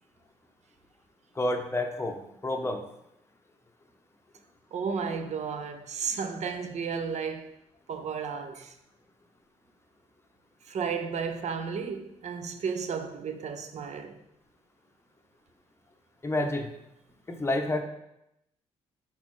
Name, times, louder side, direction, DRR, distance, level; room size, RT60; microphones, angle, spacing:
voice 1, 1.3-2.8 16.2-16.7 17.3-17.8, left 1 dB, 20° left, 0.7 m, -29 dB
voice 2, 4.7-7.6 7.9-8.8 10.6-14.2, right 6 dB, 55° right, 0.6 m, -33 dB
4.1 x 3.9 x 3.1 m
supercardioid pair, 55°, 14 cm